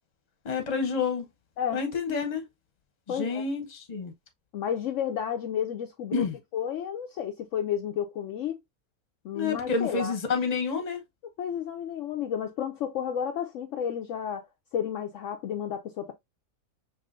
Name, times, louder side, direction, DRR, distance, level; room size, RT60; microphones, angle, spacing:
voice 1, 0.4-1.3 1.7-2.4 3.1-4.1 6.1-6.3 9.3-11.0, left 5 dB, 30° left, 0.9 m, -29 dB
voice 2, 3.1-3.4 4.5-6.3 6.5-8.6 9.2-10.2 11.4-16.1, left 8 dB, 65° left, 0.9 m, -32 dB
5.5 x 2.9 x 2.5 m
omnidirectional pair, 1.5 m